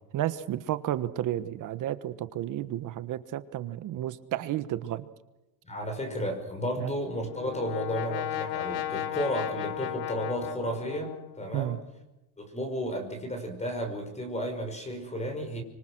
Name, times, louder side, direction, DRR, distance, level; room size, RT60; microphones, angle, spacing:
voice 1, 0.1-5.0 6.8-6.9 11.5-11.8, right 13 dB, 40° right, 12 dB, 1.3 m, -32 dB
voice 2, 5.6-11.8 12.4-15.6, equal, 15° left, 5 dB, 5.6 m, -33 dB
Brass instrument, 6.8-11.6, left 12 dB, 50° left, 2.1 m, -35 dB
26.0 x 25.0 x 6.1 m, 0.98 s
supercardioid pair, 135°, 50 cm